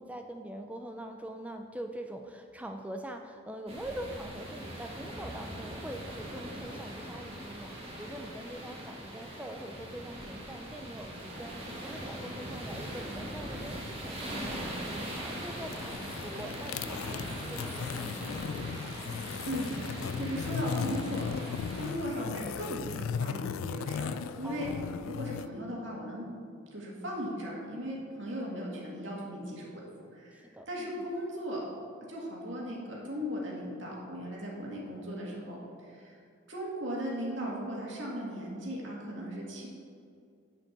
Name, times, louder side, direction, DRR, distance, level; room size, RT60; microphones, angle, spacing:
voice 1, 0.0-18.5 24.4-25.1 30.3-31.1, right 1 dB, 5° right, 4 dB, 0.3 m, -44 dB
sound 1, 3.7-21.9, equal, 30° right, 1.5 m, -41 dB
sound 2, 15.6-25.5, left 6 dB, 85° left, 0.3 m, -37 dB
voice 2, 19.2-21.3 21.8-24.1 24.4-24.7 25.0-26.3 26.7-31.6 32.1-36.2 36.5-39.7, equal, 65° right, -3 dB, 2.1 m, -37 dB
7.6 x 5.1 x 7.1 m, 2.3 s
head